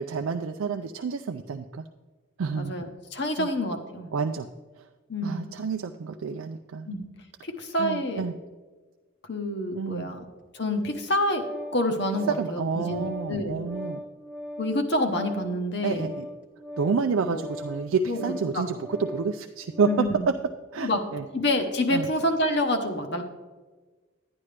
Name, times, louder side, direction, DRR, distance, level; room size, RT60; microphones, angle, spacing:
voice 1, 0.0-1.8 2.4-2.7 3.4-3.5 4.1-4.5 5.2-6.9 7.8-8.3 9.7-10.1 12.3-14.0 15.8-16.3 16.8-20.1 20.7-21.2 21.9-22.1, right 5 dB, 85° right, 6 dB, 0.4 m, -29 dB
voice 2, 2.5-4.1 5.1-5.5 6.9-7.0 7.4-8.2 9.3-10.2 10.5-11.4 11.7-13.6 14.6-16.1 17.2-17.4 18.1-18.6 19.9-20.3 20.8-21.0 21.3-23.2, left 1 dB, 55° left, 5 dB, 1.0 m, -27 dB
Organ, 10.8-20.2, equal, 5° right, 0.8 m, -40 dB
11.5 x 9.6 x 3.3 m, 1.3 s
head